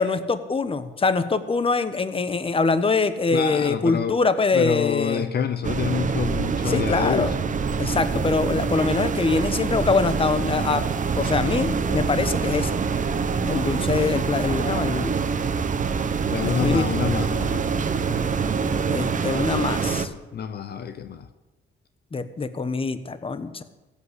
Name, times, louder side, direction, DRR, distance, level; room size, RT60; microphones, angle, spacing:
voice 1, 0.0-5.2 6.7-7.3 7.8-10.8 11.1-12.8 13.5-15.2 16.6-16.8 18.9-20.1 22.1-23.6, left 4 dB, 25° left, 12 dB, 1.1 m, -24 dB
voice 2, 3.3-4.2 4.5-7.4 16.2-17.7 20.3-21.3, left 7 dB, 55° left, 11 dB, 0.9 m, -27 dB
sound 1, 5.6-20.1, right 5 dB, 40° right, 1.1 m, -25 dB
15.5 x 8.4 x 8.2 m, 1.1 s
cardioid pair, 90°, 20 cm